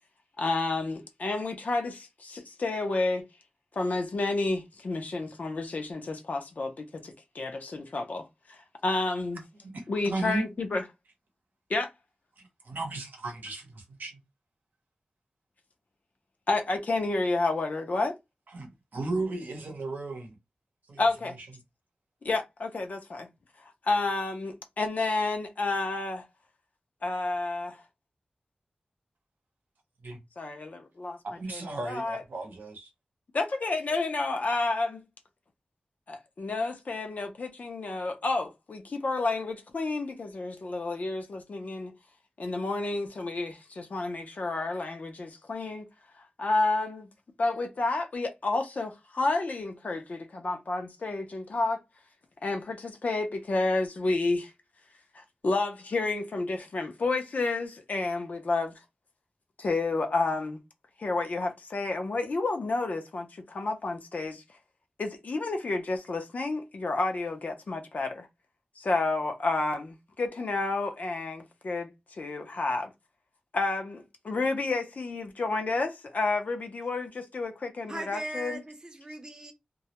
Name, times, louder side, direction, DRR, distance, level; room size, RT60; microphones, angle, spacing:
voice 1, 0.4-3.2 3.8-9.4 9.9-10.8 11.7-11.9 16.5-18.2 21.0-21.4 22.2-23.3 23.6-26.3 27.0-27.8 30.4-31.2 31.5-32.2 33.3-35.0 36.1-41.9 42.4-45.9 46.2-47.1 47.4-51.8 52.4-54.5 55.1-58.7 59.6-60.6 61.0-64.4 65.0-68.3 68.8-72.9 73.5-78.6, left 3 dB, 60° left, 0.5 m, -30 dB
voice 2, 9.6-10.4 12.4-14.2 18.5-20.4 20.9-21.0 30.0-30.2 31.2-32.9, right 2 dB, 85° right, 0.7 m, -35 dB
voice 3, 77.9-79.5, right 1 dB, 25° right, 0.6 m, -38 dB
2.2 x 2.0 x 2.8 m
wide cardioid pair, 100°, 3 cm